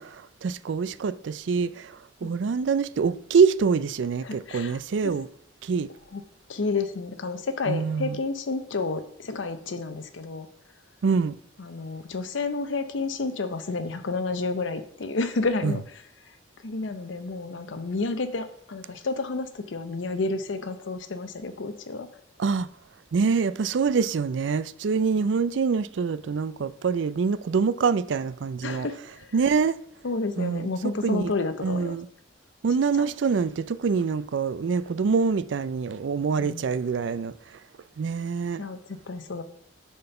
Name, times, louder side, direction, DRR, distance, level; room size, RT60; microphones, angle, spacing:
voice 1, 0.0-5.3 5.6-5.9 7.7-8.2 11.0-11.4 15.6-15.7 22.4-22.7 23.1-28.9 29.3-29.8 30.4-30.7 31.0-31.3 31.6-32.1 32.6-37.3 38.0-38.6, right 5 dB, 75° right, 0.4 m, -25 dB
voice 2, 4.2-4.8 6.1-6.2 6.5-10.5 11.6-16.0 16.6-22.1 25.2-25.3 28.6-29.3 30.0-31.9 32.9-33.1 36.4-36.7 38.6-39.4, left 3 dB, 80° left, 0.7 m, -30 dB
6.7 x 4.3 x 6.7 m
head